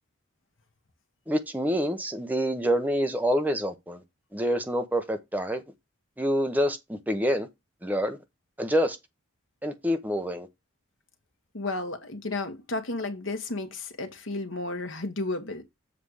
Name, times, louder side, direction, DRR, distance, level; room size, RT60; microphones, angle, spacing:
voice 1, 1.3-4.0 4.3-5.6 6.2-7.5 7.8-8.2 8.6-9.0 9.6-10.5, equal, 10° right, 0.8 m, -27 dB
voice 2, 11.5-15.6, left 2 dB, 70° left, 1.4 m, -33 dB
7.4 x 3.4 x 6.4 m
head